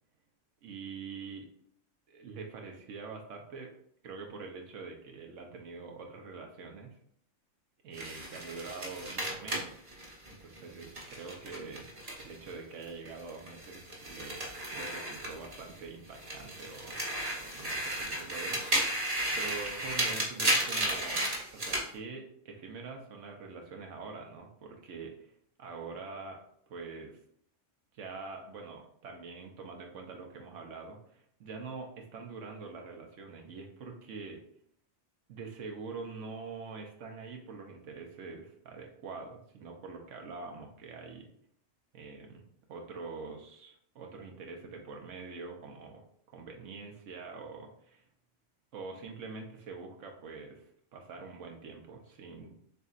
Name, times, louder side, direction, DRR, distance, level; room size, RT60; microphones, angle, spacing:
voice 1, 0.6-1.5 2.1-3.7 4.0-7.0 7.8-9.8 10.3-11.9 12.2-17.0 17.5-21.2 21.5-26.4 26.7-27.2 27.9-34.4 35.3-41.3 41.9-42.4 42.7-46.0 46.3-48.1 48.7-52.6, right 4 dB, 80° right, 2 dB, 1.0 m, -45 dB
sound 1, 7.9-12.5 12.8-15.8 16.1-21.9, right 1 dB, 30° right, 1.2 m, -34 dB
6.7 x 2.7 x 2.4 m, 0.66 s
omnidirectional pair, 1.3 m